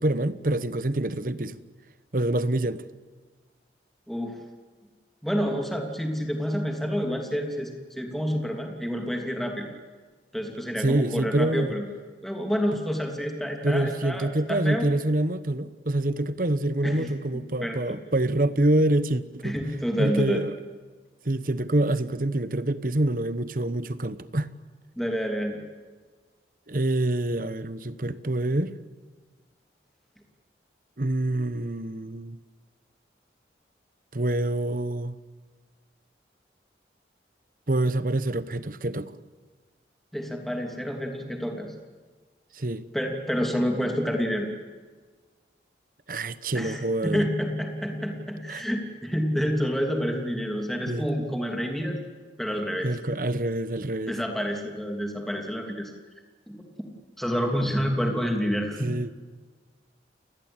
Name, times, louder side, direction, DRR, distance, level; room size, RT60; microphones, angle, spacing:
voice 1, 0.0-1.6 2.1-2.8 10.8-11.7 13.6-19.5 20.0-20.5 21.2-24.5 26.7-28.7 31.0-32.4 34.1-35.1 37.7-39.1 42.5-42.8 46.1-47.3 48.5-48.6 50.9-51.1 52.8-54.2 58.8-59.1, right 1 dB, 50° right, 1.1 m, -26 dB
voice 2, 4.1-4.4 5.2-9.7 10.3-11.9 12.2-14.9 16.8-18.0 19.4-20.4 25.0-25.6 40.1-41.7 42.9-44.5 46.5-52.0 52.4-52.9 54.1-55.9 56.5-56.6 57.2-58.9, equal, ahead, 3.0 m, -28 dB
29.5 x 20.0 x 8.8 m
head